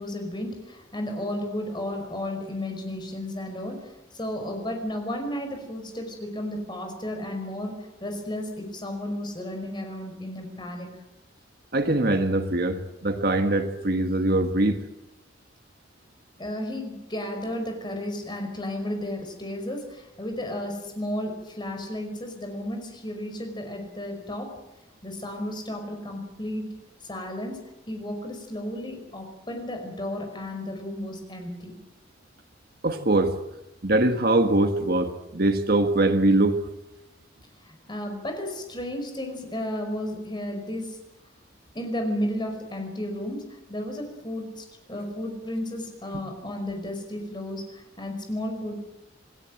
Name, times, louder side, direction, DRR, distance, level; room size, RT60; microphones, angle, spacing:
voice 1, 0.0-7.7 8.0-10.9 16.4-24.6 25.0-26.7 27.1-31.7 37.6-41.0 41.7-48.9, left 1 dB, 25° left, 5 dB, 5.4 m, -33 dB
voice 2, 11.7-14.8 32.8-33.3 33.8-36.6, right 2 dB, 50° right, 7 dB, 1.6 m, -22 dB
28.0 x 17.5 x 7.8 m, 0.94 s
head